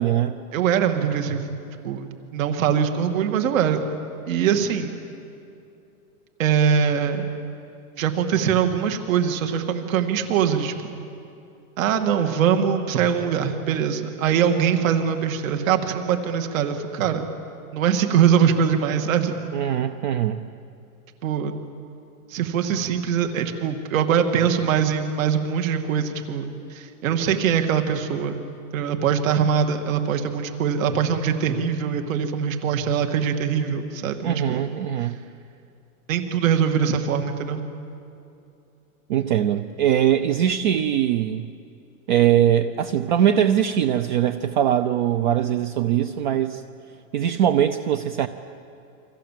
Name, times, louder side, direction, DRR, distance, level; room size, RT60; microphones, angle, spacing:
voice 1, 0.0-0.4 19.5-20.4 34.2-35.1 39.1-41.5 42.1-46.6 47.1-48.3, right 10 dB, 35° right, 11 dB, 0.6 m, -21 dB
voice 2, 0.5-1.5 1.8-3.9 4.3-5.0 6.4-7.3 8.0-11.0 11.8-17.2 17.7-19.4 21.2-21.5 22.3-28.3 28.7-34.6 36.1-37.6, right 7 dB, 65° right, 6 dB, 2.4 m, -22 dB
29.0 x 25.5 x 7.6 m, 2.7 s
supercardioid pair, 175°, 44 cm